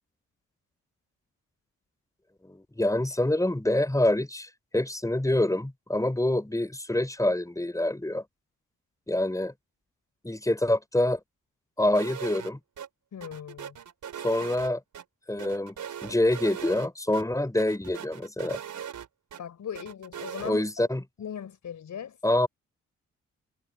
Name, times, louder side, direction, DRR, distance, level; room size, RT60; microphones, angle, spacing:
voice 1, 2.4-8.2 9.1-9.5 10.2-11.2 11.8-12.6 14.2-14.8 15.3-15.8 16.0-18.6 20.4-21.0 22.2-22.5, left 1 dB, 10° left, 5.3 m, -26 dB
sound 1, 11.9-12.5 12.8-12.9 13.2-15.0 15.4-16.9 17.1-17.2 17.6-19.4 19.7-20.5, right 9 dB, 70° right, 4.3 m, -40 dB
voice 2, 13.1-13.8 19.4-20.6 21.2-22.2, left 8 dB, 65° left, 5.1 m, -38 dB
supercardioid pair, 45°, 32 cm